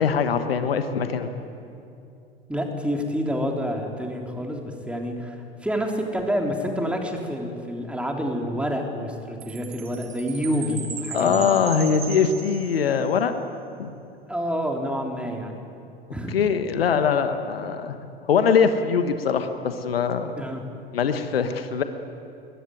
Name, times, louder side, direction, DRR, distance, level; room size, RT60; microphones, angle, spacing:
voice 1, 0.0-1.3 11.1-13.3 13.8-13.9 16.3-18.0 18.3-20.3 20.9-21.8, left 6 dB, 70° left, 9 dB, 1.4 m, -22 dB
voice 2, 2.5-11.5 14.3-15.6 16.1-16.4 20.4-20.6, equal, 5° right, 2 dB, 3.5 m, -28 dB
Chime, 9.4-13.1, right 6 dB, 70° right, 3.3 m, -37 dB
21.5 x 21.0 x 9.4 m, 2.6 s
figure-of-eight pair, 80°, 31 cm